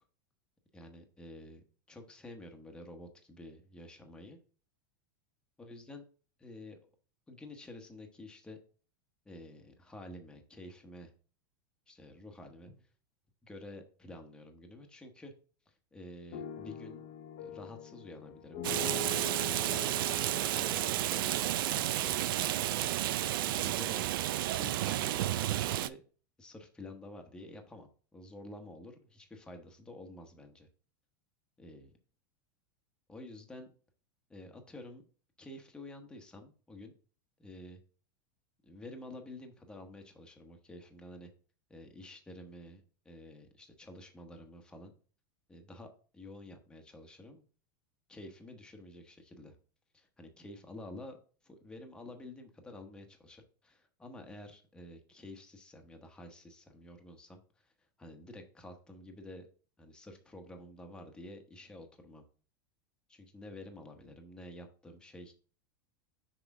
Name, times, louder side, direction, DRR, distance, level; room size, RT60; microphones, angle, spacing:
voice 1, 0.7-4.4 5.6-6.0 6.4-6.8 7.3-8.6 9.2-11.1 11.9-12.9 13.4-15.3 15.7-17.0 17.4-19.0 19.2-20.0 20.5-21.4 21.7-22.9 23.4-24.1 24.4-26.0 26.4-30.7 31.6-31.9 33.1-33.7 34.3-35.0 35.4-36.9 37.4-37.8 38.6-41.3 41.7-44.9 45.5-45.9 46.1-47.4 48.1-49.6 49.9-51.2 51.4-57.7 58.0-59.5 59.8-62.2 63.1-65.3, left 1 dB, 5° left, 4 dB, 1.0 m, -50 dB
sound 1, 16.3-22.4, left 7 dB, 50° left, 0.7 m, -44 dB
Rain, 18.6-25.9, right 14 dB, 75° right, 0.5 m, -31 dB
6.1 x 4.8 x 3.6 m, 0.40 s
supercardioid pair, 150°, 12 cm